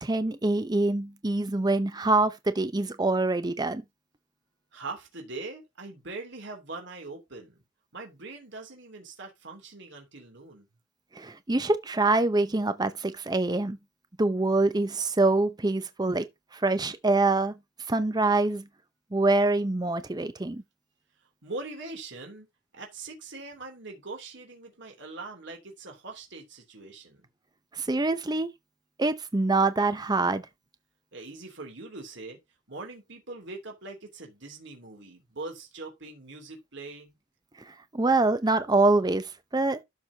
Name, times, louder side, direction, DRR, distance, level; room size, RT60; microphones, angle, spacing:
voice 1, 0.0-3.8 11.1-13.8 14.2-16.2 16.5-17.5 17.9-18.6 19.1-20.6 27.7-28.5 29.0-30.4 37.7-39.8, right 2 dB, 20° right, 0.6 m, -25 dB
voice 2, 4.7-7.6 7.9-10.7 21.2-22.5 22.7-27.3 31.1-32.4 32.7-37.2, right 3 dB, 60° right, 3.1 m, -42 dB
12.5 x 6.2 x 2.9 m
head